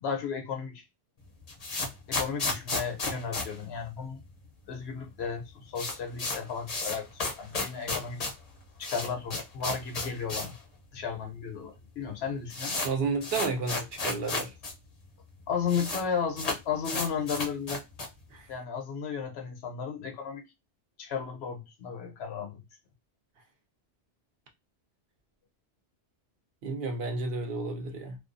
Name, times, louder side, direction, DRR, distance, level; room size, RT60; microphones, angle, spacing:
voice 1, 0.0-0.8 2.1-4.2 4.7-8.2 8.8-10.5 10.9-12.8 15.5-17.8 18.5-20.5 21.0-22.6, left 6 dB, 70° left, 0.9 m, -34 dB
sound 1, 1.2-4.5 4.7-4.8 5.0-5.1 5.4-10.6 10.9-11.0 11.7-11.8 12.0-14.7 15.0-15.1 15.3-16.0 16.3-18.2, left 3 dB, 45° left, 0.6 m, -33 dB
voice 2, 12.8-14.5 18.3-18.5 26.6-28.2, right 3 dB, 65° right, 0.7 m, -31 dB
2.3 x 2.3 x 2.5 m
omnidirectional pair, 1.2 m